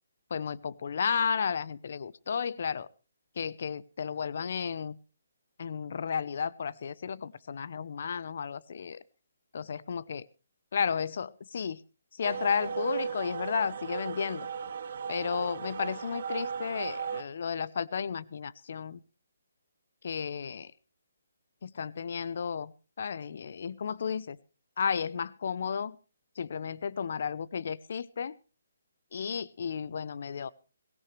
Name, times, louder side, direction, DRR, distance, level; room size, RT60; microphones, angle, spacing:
voice 1, 0.3-2.9 3.4-5.0 5.6-9.0 9.5-10.3 10.7-11.8 12.1-14.5 15.1-19.0 20.0-20.7 21.6-22.7 23.0-24.4 24.8-26.0 26.4-28.3 29.1-30.5, left 6 dB, 60° left, 19 dB, 0.8 m, -33 dB
sound 1, 12.2-17.2, right 7 dB, 55° right, 1.3 m, -36 dB
18.0 x 17.0 x 3.3 m, 0.34 s
hypercardioid pair, 150°, 0 cm